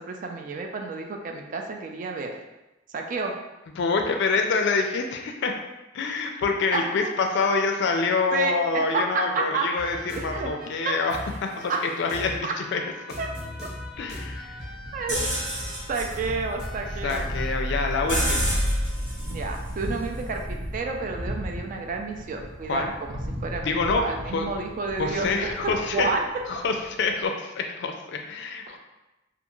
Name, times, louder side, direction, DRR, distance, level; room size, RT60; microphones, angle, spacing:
voice 1, 0.0-2.3 2.9-3.3 6.7-7.1 8.3-9.7 10.1-10.5 10.8-10.9 11.7-11.9 12.4-12.5 13.2-13.3 13.6-13.7 14.9-15.2 15.9-17.3 19.3-26.2 28.7-28.8, right 4 dB, 45° right, 3 dB, 0.3 m, -30 dB
voice 2, 3.8-5.5 5.9-11.7 12.0-12.8 14.0-14.5 17.0-18.5 22.7-22.9 23.6-24.5 25.0-26.1 26.5-28.8, left 4 dB, 65° left, 3 dB, 0.4 m, -26 dB
sound 1, 9.8-17.5, left 1 dB, 5° right, 0.7 m, -39 dB
Thunder, 13.9-27.3, equal, 70° right, 0.7 m, -38 dB
sound 2, 15.1-20.9, equal, 85° right, 1.0 m, -29 dB
2.4 x 2.3 x 2.9 m, 1.0 s
head